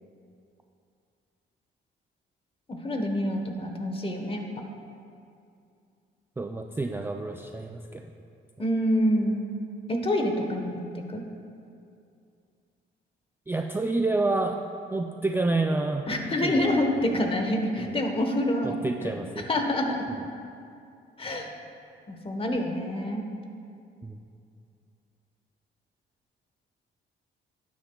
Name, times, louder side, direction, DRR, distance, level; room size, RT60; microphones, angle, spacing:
voice 1, 2.7-4.4 8.6-9.4 9.9-10.8 11.1-11.2 16.1-18.8 19.5-20.0 21.2-21.5 22.1-23.2, left 1 dB, 25° left, 4 dB, 1.1 m, -26 dB
voice 2, 6.4-8.0 13.5-14.6 14.9-16.0 16.4-16.8 17.8-17.9 18.6-19.5 24.0-24.2, right 2 dB, 10° right, 3 dB, 0.3 m, -28 dB
11.5 x 9.7 x 2.3 m, 2.5 s
cardioid pair, 90°, 20 cm